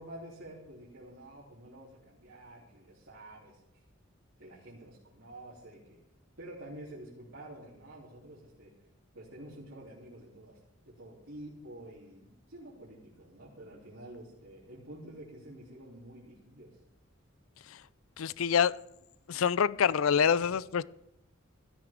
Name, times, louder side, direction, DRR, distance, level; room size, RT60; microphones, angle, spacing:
voice 1, 0.0-3.8 4.4-6.0 6.4-8.7 9.1-10.6 10.8-16.8, right 1 dB, 75° right, -6 dB, 3.3 m, -49 dB
voice 2, 18.2-18.7 19.3-20.8, left 7 dB, 80° left, 19 dB, 0.4 m, -26 dB
16.0 x 13.0 x 3.7 m, 0.82 s
head